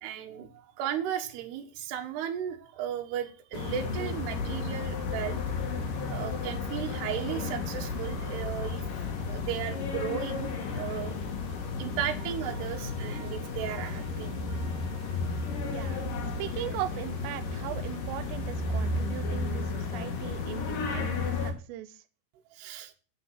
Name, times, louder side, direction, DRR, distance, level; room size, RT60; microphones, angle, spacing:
voice 1, 0.0-5.5 6.1-8.8 9.3-11.1 11.8-14.3 22.5-22.9, right 10 dB, 65° right, 4 dB, 3.2 m, -35 dB
sound 1, 3.5-21.5, left 4 dB, 55° left, 2.9 m, -33 dB
Wind instrument woodwind instrument, 12.2-16.1, right 9 dB, 30° right, 5.6 m, -52 dB
voice 2, 15.7-16.1 16.4-22.0, right 14 dB, 90° right, 14 dB, 3.4 m, -39 dB
10.5 x 7.6 x 7.9 m, 0.36 s
omnidirectional pair, 5.7 m